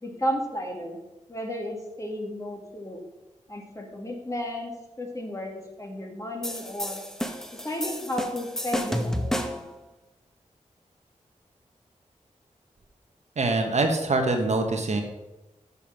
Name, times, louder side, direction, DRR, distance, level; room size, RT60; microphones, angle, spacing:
voice 1, 0.0-1.0 1.3-3.0 3.5-4.7 5.0-7.1 7.6-9.6, equal, 25° left, 1 dB, 2.0 m, -33 dB
sound 1, 6.4-9.7, equal, 5° left, 1.0 m, -31 dB
voice 2, 13.4-15.0, right 2 dB, 60° right, 4 dB, 1.3 m, -24 dB
7.0 x 5.5 x 6.4 m, 0.99 s
cardioid pair, 55°, 13 cm